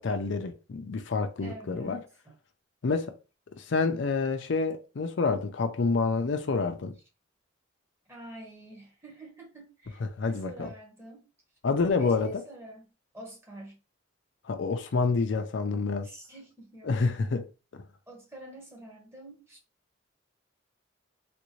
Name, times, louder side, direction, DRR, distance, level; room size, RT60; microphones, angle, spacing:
voice 1, 0.0-2.0 2.8-3.1 3.6-7.0 10.0-10.7 11.6-12.3 14.5-16.1 16.8-17.5, left 4 dB, 70° left, 0.5 m, -28 dB
voice 2, 1.4-2.4 8.1-11.3 12.0-12.9 13.1-13.8 16.0-16.9 18.1-19.6, right 1 dB, 15° right, 1.1 m, -47 dB
3.5 x 2.6 x 3.1 m
head